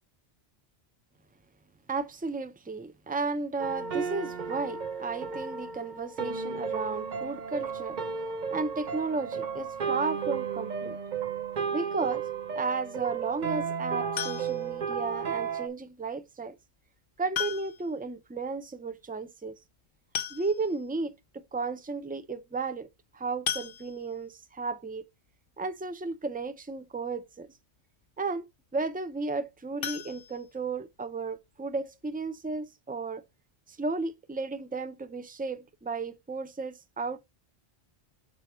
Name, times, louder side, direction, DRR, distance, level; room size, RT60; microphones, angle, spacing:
voice 1, 1.9-8.0 8.5-11.0 11.7-12.2 12.5-16.6 17.2-19.6 20.3-22.9 23.1-25.0 25.6-27.5 28.2-28.5 28.7-33.2 33.7-37.2, right 4 dB, 10° right, 0.5 m, -34 dB
sound 1, 3.6-15.7, right 6 dB, 45° right, 0.8 m, -33 dB
sound 2, 14.2-14.8 16.3-16.4 17.3-18.0 18.3-18.4 18.6-18.7 19.7-19.8 20.1-20.9 21.4-21.5 21.8-22.0 23.5-24.3 29.8-31.0 31.4-31.5 31.9-32.0 32.3-32.4, left 9 dB, 60° left, 0.8 m, -36 dB
6.3 x 4.5 x 4.3 m
omnidirectional pair, 1.1 m